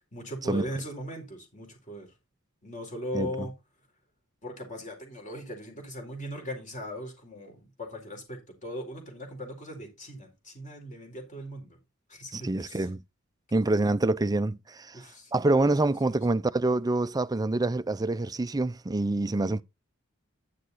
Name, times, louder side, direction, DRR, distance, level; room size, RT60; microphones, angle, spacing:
voice 1, 0.1-2.1 2.6-3.5 4.4-11.8 12.1-12.9 13.5-13.8 14.9-15.3 16.1-16.2 19.3-19.5, equal, 35° left, 4.2 m, -39 dB
voice 2, 3.1-3.5 12.3-13.0 13.5-15.0 15.3-19.6, right 2 dB, 20° right, 0.5 m, -26 dB
10.5 x 6.5 x 4.0 m
head